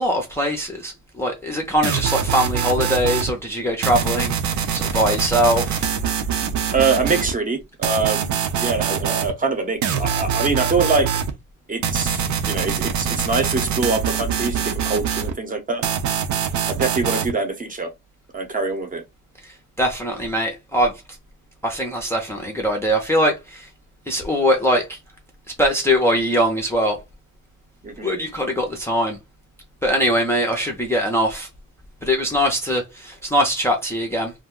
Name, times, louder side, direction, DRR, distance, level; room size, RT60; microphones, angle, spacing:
voice 1, 0.0-4.3 4.7-5.9 19.4-21.0 21.6-23.7 24.1-25.0 25.6-27.0 28.0-29.2 29.8-31.5 32.0-34.3, equal, 10° left, 0.5 m, -21 dB
sound 1, 1.8-3.3 3.8-7.3 7.8-9.3 9.8-11.3 11.8-15.3 15.8-17.3, right 7 dB, 65° right, 0.6 m, -24 dB
voice 2, 6.7-11.1 11.7-15.9 16.7-17.9 18.3-19.0 27.8-28.1, right 4 dB, 25° right, 0.7 m, -24 dB
2.4 x 2.2 x 3.6 m
cardioid pair, 145°, 31 cm